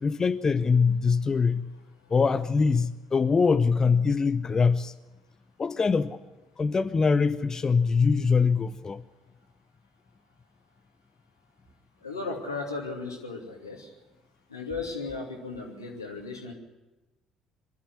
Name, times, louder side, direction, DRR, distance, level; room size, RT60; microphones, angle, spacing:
voice 1, 0.0-1.7 2.1-4.9 5.6-6.2 6.6-9.0, left 5 dB, 30° left, 0.7 m, -23 dB
voice 2, 12.0-13.9 14.5-16.5, left 3 dB, 90° left, 2.7 m, -35 dB
24.0 x 12.5 x 9.7 m
figure-of-eight pair, 50°, 2 cm